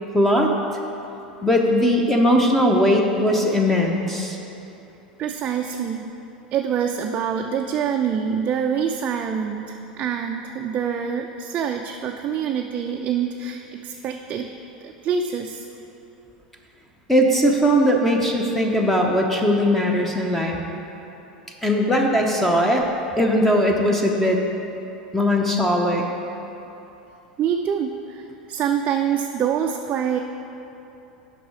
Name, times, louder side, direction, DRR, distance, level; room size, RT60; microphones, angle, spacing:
voice 1, 0.1-0.5 1.4-4.4 17.1-20.6 21.6-22.9 23.2-24.4 25.1-26.0, equal, 5° left, 0 dB, 0.7 m, -19 dB
voice 2, 5.2-6.1 6.5-14.5 14.8-15.6 27.4-30.2, right 7 dB, 35° right, 3 dB, 0.4 m, -25 dB
7.8 x 5.4 x 4.9 m, 3.0 s
figure-of-eight pair, 80°, 4 cm